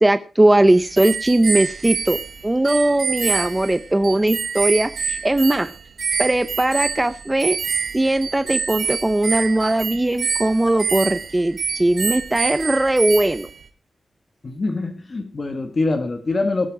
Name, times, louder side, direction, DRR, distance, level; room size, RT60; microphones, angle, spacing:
voice 1, 0.0-2.2 2.4-5.7 6.2-7.6 7.9-13.5, right 1 dB, 15° right, 11 dB, 0.6 m, -19 dB
sound 1, 0.7-13.6, right 6 dB, 65° right, 1.2 m, -27 dB
voice 2, 14.4-16.7, left 3 dB, 40° left, 6 dB, 1.7 m, -24 dB
18.5 x 8.8 x 4.8 m, 0.35 s
wide cardioid pair, 130°, 0 cm